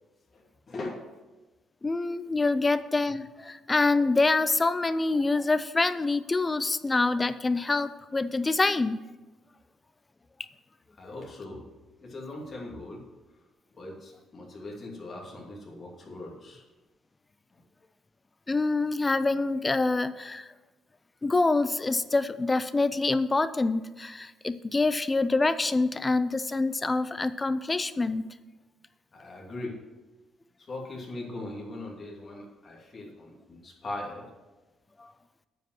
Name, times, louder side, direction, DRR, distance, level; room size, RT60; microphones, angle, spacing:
voice 1, 0.3-1.0 10.9-11.6 12.0-13.0 13.8-16.6 29.1-29.8 30.6-34.3, left 2 dB, 35° left, -2 dB, 2.6 m, -40 dB
voice 2, 1.8-9.0 18.5-20.5 21.2-28.3 35.0-35.1, left 3 dB, 20° left, 14 dB, 0.4 m, -26 dB
9.4 x 5.3 x 7.7 m, 1.2 s
cardioid pair, 130°, 0 cm